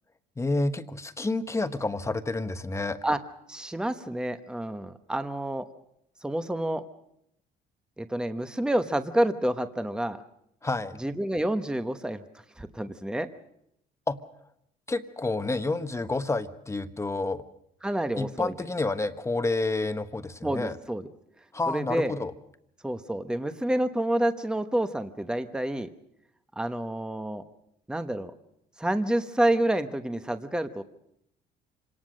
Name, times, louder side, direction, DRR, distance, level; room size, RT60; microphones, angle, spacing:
voice 1, 0.4-3.0 10.6-11.0 14.1-14.2 14.9-17.4 18.2-20.8 21.5-22.3, left 2 dB, 15° left, 9 dB, 1.2 m, -29 dB
voice 2, 3.5-5.6 6.2-6.8 8.0-10.2 11.0-12.2 12.6-13.3 17.8-18.5 20.4-21.0 21.7-22.1 22.8-25.9 26.6-27.4 27.9-28.3 28.8-30.8, right 1 dB, 5° right, 9 dB, 1.1 m, -28 dB
26.0 x 18.5 x 6.4 m, 0.77 s
cardioid pair, 110°, 17 cm